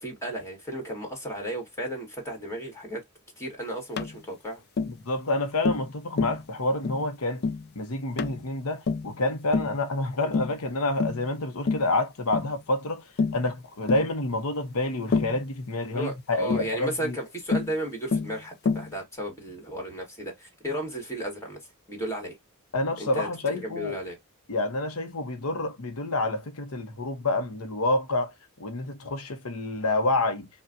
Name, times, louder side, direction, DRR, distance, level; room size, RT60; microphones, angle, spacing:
voice 1, 0.0-3.0 3.4-4.6 15.8-21.6 21.9-22.4 23.0-23.3 23.5-24.2, right 1 dB, 15° left, 1.8 m, -34 dB
Tap, 4.0-4.1 4.8-5.0 5.6-5.9 6.2-6.4 6.8-7.0 7.4-7.6 8.2-8.4 8.9-9.1 9.5-9.8 10.3-10.6 11.0-11.2 11.7-11.9 12.3-12.5 13.2-13.4 13.9-14.1 15.1-15.4 16.5-16.7 17.5-17.7 18.1-18.3 18.7-18.9, left 4 dB, 45° left, 0.4 m, -27 dB
voice 2, 4.9-7.5 7.8-13.0 13.3-17.2 22.7-24.0 24.5-28.3 28.6-30.5, left 2 dB, 90° left, 0.9 m, -28 dB
5.4 x 2.3 x 2.6 m
head